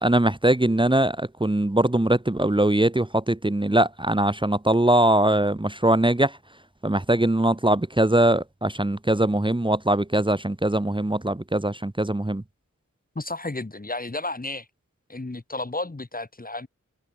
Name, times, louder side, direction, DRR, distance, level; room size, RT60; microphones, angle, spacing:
voice 1, 0.0-6.3 6.8-12.4, right 1 dB, 15° right, 1.7 m, -21 dB
voice 2, 13.2-14.7 15.1-16.7, left 2 dB, 25° left, 2.3 m, -32 dB
wide cardioid pair, 70°, 32 cm